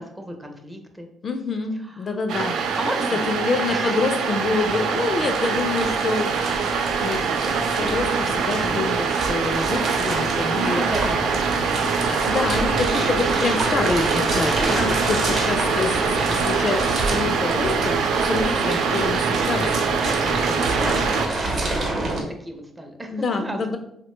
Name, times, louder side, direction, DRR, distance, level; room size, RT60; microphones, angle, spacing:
voice 1, 0.0-1.1 1.7-2.1 2.8-3.4 3.6-4.1 10.5-12.4 14.6-15.2 19.6-20.1 20.5-23.7, right 1 dB, 15° right, 4 dB, 0.5 m, -35 dB
voice 2, 1.2-2.6 3.3-6.3 6.6-10.8 12.1-21.0 23.1-23.8, left 4 dB, 45° left, 6 dB, 0.3 m, -27 dB
sound 1, 2.3-21.3, right 5 dB, 80° right, 0.3 m, -24 dB
sound 2, 4.1-22.2, right 2 dB, 55° right, 0.8 m, -29 dB
sound 3, 9.8-18.0, left 1 dB, 80° left, 0.7 m, -35 dB
2.9 x 2.1 x 2.9 m, 0.76 s
cardioid pair, 90°, 0 cm